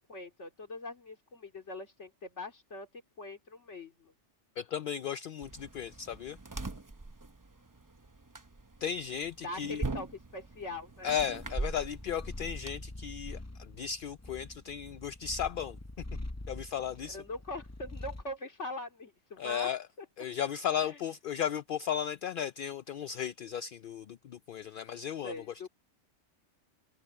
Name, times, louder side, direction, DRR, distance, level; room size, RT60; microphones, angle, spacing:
voice 1, 0.1-2.9 3.2-4.1 9.4-11.1 17.1-19.7 20.0-20.1 20.8-21.0 25.2-25.7, left 2 dB, 80° left, 3.0 m, -42 dB
voice 2, 4.6-6.4 8.8-9.8 11.0-15.8 16.5-17.2 19.4-19.9 20.2-25.7, left 8 dB, 60° left, 0.6 m, -35 dB
sound 1, 5.4-12.7, right 2 dB, 20° right, 0.7 m, -41 dB
Purr, 11.4-18.3, left 1 dB, 15° left, 0.9 m, -44 dB
open air
omnidirectional pair, 1.2 m